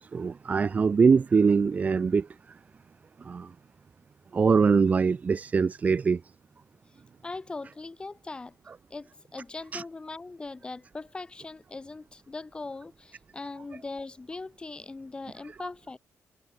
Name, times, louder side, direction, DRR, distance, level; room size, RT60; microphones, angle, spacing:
voice 1, 0.0-2.3 3.3-3.5 4.3-6.2 9.7-9.8, right 5 dB, 25° right, 0.4 m, -23 dB
voice 2, 7.2-8.6 8.9-16.0, left 3 dB, 15° left, 1.2 m, -40 dB
wide cardioid pair, 165°, 6 cm